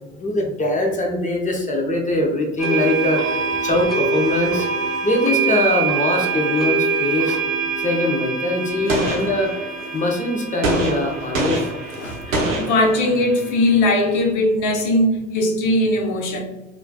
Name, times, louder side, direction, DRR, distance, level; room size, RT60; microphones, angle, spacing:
voice 1, 0.0-3.2 3.6-4.7 5.0-7.4 7.8-9.5 9.9-11.6, left 1 dB, 20° left, 0.6 m, -22 dB
sound 1, 2.6-14.2, right 5 dB, ahead, 1.0 m, -25 dB
Gunshot gunfire, 8.9-9.9 10.6-13.4, right 1 dB, 90° right, 0.7 m, -25 dB
voice 2, 11.9-16.4, left 1 dB, 50° left, 0.8 m, -20 dB
3.2 x 2.5 x 2.2 m
hypercardioid pair, 65°, 39 cm